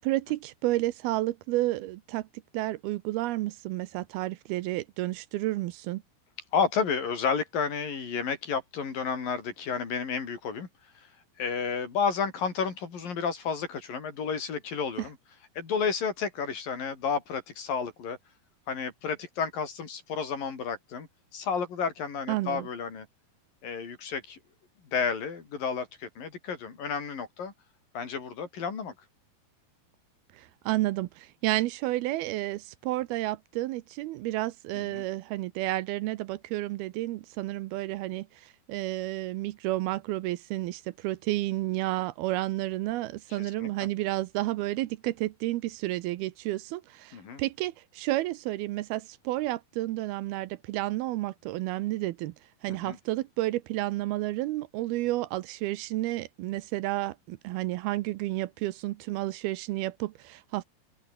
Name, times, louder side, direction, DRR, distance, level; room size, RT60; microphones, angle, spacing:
voice 1, 0.0-2.3 2.5-6.0 22.3-22.7 30.3-52.3 52.6-60.6, right 17 dB, 80° right, 2.6 m, -31 dB
voice 2, 6.5-10.7 11.4-15.2 15.6-18.2 18.7-21.1 21.3-23.1 23.6-24.4 24.9-27.5 27.9-28.9 34.8-35.1 43.4-43.9 47.1-47.4 52.7-53.0, left 6 dB, 60° left, 5.7 m, -31 dB
open air
omnidirectional pair, 4.6 m